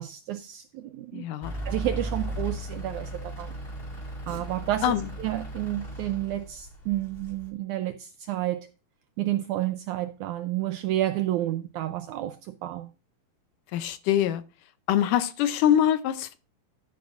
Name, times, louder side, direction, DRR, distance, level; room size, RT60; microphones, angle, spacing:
voice 1, 0.0-1.3 1.7-3.5 4.3-4.9 5.2-8.7 9.2-12.9, right 14 dB, 80° right, 1.7 m, -30 dB
voice 2, 1.1-1.5 4.8-5.0 13.7-14.4 14.9-16.4, left 10 dB, 75° left, 2.1 m, -24 dB
Truck / Idling, 1.4-7.5, right 1 dB, 30° left, 1.1 m, -36 dB
11.5 x 10.5 x 2.4 m
omnidirectional pair, 4.0 m